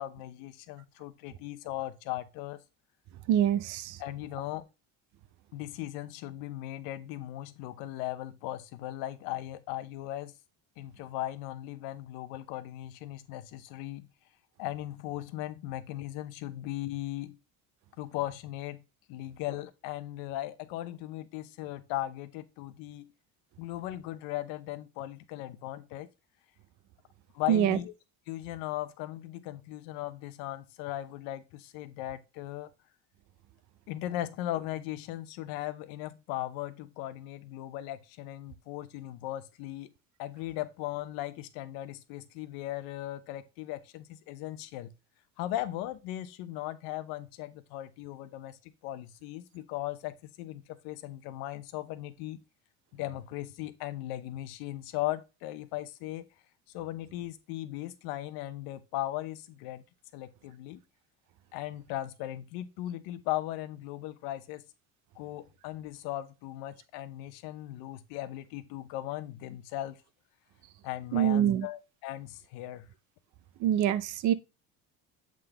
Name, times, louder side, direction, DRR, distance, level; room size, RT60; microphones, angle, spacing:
voice 1, 0.0-2.6 4.0-4.7 5.5-10.3 10.8-14.1 14.6-17.4 18.0-18.8 19.1-23.1 23.6-26.1 27.3-27.9 28.3-32.7 33.9-39.9 40.2-44.9 45.4-52.4 52.9-56.2 56.7-59.8 60.1-60.8 61.5-64.6 65.2-70.0 70.8-72.9, left 14 dB, 80° left, 0.9 m, -38 dB
voice 2, 3.3-4.0 27.5-27.8 71.1-71.7 73.6-74.3, right 10 dB, 55° right, 0.6 m, -25 dB
7.6 x 3.8 x 3.3 m
cardioid pair, 140°, 36 cm